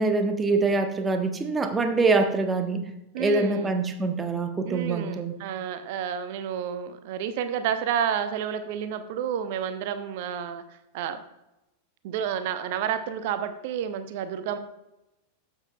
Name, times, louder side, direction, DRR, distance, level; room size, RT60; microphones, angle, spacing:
voice 1, 0.0-2.9 3.2-5.4, right 3 dB, 15° right, 7 dB, 1.1 m, -24 dB
voice 2, 3.1-3.8 4.7-10.6 10.9-11.2 12.0-14.6, right 8 dB, 50° right, 11 dB, 0.8 m, -30 dB
12.0 x 8.3 x 2.4 m, 0.91 s
figure-of-eight pair, 90°, 0 cm